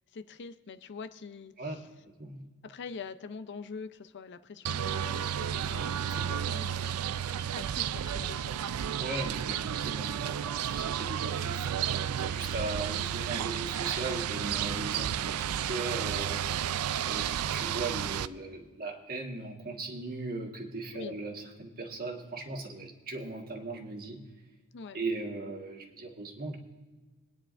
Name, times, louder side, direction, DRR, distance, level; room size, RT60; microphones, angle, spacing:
voice 1, 0.0-1.8 2.6-6.9 7.5-8.7 20.9-21.1 24.7-25.0, left 5 dB, 55° left, 11 dB, 0.5 m, -44 dB
sound 1, 4.7-18.3, right 9 dB, 75° right, 0.4 m, -32 dB
voice 2, 9.0-16.4 17.0-24.2 24.9-26.6, right 3 dB, 45° right, 2 dB, 1.5 m, -38 dB
22.5 x 9.7 x 2.5 m, 1.3 s
head